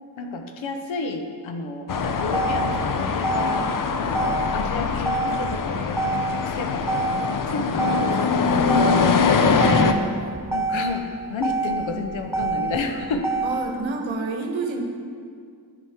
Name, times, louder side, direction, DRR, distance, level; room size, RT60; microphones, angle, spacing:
voice 1, 0.2-3.7 4.0-9.4 10.5-13.3, left 3 dB, 70° left, 5 dB, 0.8 m, -32 dB
sound 1, 1.9-9.9, left 5 dB, 40° left, 0.6 m, -23 dB
Motor vehicle (road), 1.9-13.9, right 3 dB, 5° right, 0.9 m, -28 dB
voice 2, 9.5-10.4 13.4-14.8, right 3 dB, 70° right, 3 dB, 1.0 m, -29 dB
9.6 x 5.2 x 2.9 m, 2.2 s
supercardioid pair, 45°, 49 cm